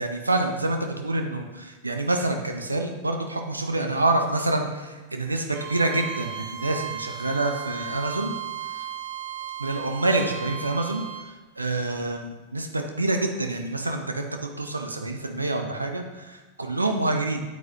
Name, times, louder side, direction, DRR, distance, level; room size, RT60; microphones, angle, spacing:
voice 1, 0.0-8.3 8.6-8.8 9.6-17.4, right 2 dB, 80° right, 4 dB, 0.7 m, -27 dB
Bowed string instrument, 5.5-11.3, right 10 dB, 50° right, 0.8 m, -36 dB
9.1 x 8.2 x 2.8 m, 1.3 s
figure-of-eight pair, 90°, 0 cm